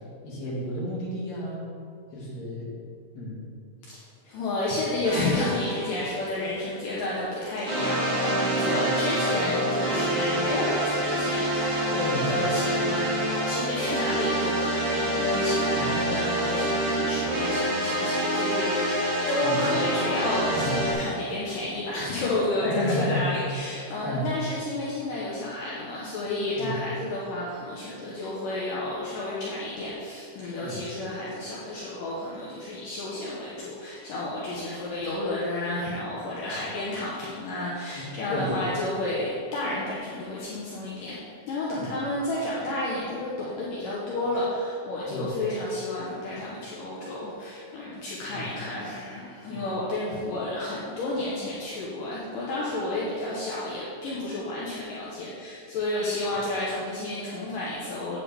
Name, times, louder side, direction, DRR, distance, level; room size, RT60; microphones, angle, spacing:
voice 1, 0.2-1.6 2.1-2.7 3.1-3.4 8.7-8.9 12.0-12.3 15.7-15.9 19.4-19.8 20.5-20.7 22.6-23.4 24.0-24.3 26.6-26.7 30.6-30.8 38.0-38.6 41.7-41.9 45.1-45.3 48.3-48.5 49.5-49.6, left 1 dB, 50° left, -7 dB, 3.1 m, -32 dB
voice 2, 4.2-41.2 41.5-58.2, left 2 dB, 70° left, -6 dB, 2.5 m, -31 dB
sound 1, 5.0-6.8 7.6-20.9, right 1 dB, 60° right, 3.3 m, -27 dB
9.1 x 8.6 x 3.4 m, 2.4 s
omnidirectional pair, 4.4 m